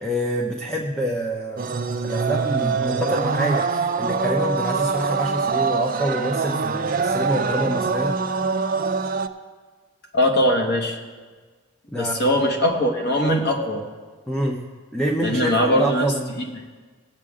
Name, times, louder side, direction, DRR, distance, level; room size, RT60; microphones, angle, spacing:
voice 1, 0.0-1.7 2.0-8.1 11.9-12.2 14.3-14.6 14.9-16.3, right 1 dB, 5° left, -1 dB, 0.7 m, -26 dB
sound 1, 1.6-9.3, right 5 dB, 40° right, 0.4 m, -24 dB
voice 2, 10.1-11.0 11.9-13.9 15.2-16.5, equal, 50° left, 2 dB, 1.4 m, -21 dB
19.0 x 7.5 x 3.7 m, 1.5 s
head